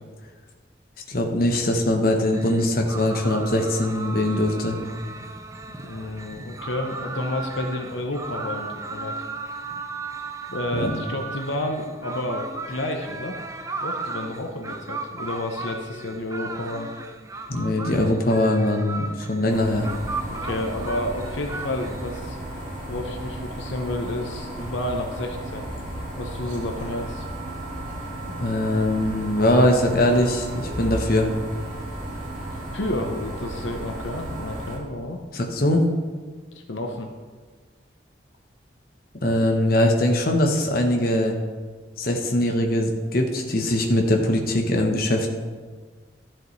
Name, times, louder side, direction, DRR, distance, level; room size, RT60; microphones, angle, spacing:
voice 1, 1.1-4.8 10.7-10.9 17.5-19.9 28.4-31.3 35.3-35.9 39.2-41.3 42.0-45.3, left 1 dB, 50° left, 2 dB, 1.0 m, -21 dB
sound 1, 2.3-22.2, right 3 dB, 15° right, 0.4 m, -36 dB
voice 2, 5.7-9.2 10.5-13.4 13.8-16.9 20.3-22.4 22.9-25.7 26.2-27.2 32.5-35.2 36.5-37.1, left 1 dB, 75° left, 3 dB, 0.8 m, -30 dB
sound 2, 19.5-34.8, right 1 dB, 45° right, 2.3 m, -34 dB
12.5 x 7.6 x 3.2 m, 1.5 s
head